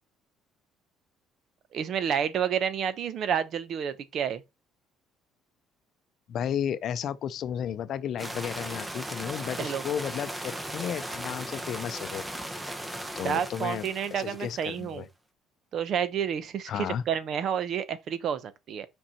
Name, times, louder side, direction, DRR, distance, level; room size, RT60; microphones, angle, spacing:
voice 1, 1.7-4.4 9.6-9.8 13.2-15.0 15.7-18.9, right 8 dB, 50° right, 0.9 m, -30 dB
voice 2, 6.3-12.2 13.2-15.1 16.7-17.0, left 9 dB, 50° left, 0.6 m, -33 dB
sound 1, 8.2-14.8, right 1 dB, 10° right, 0.9 m, -37 dB
5.9 x 5.4 x 4.2 m
cardioid pair, 135°, 0 cm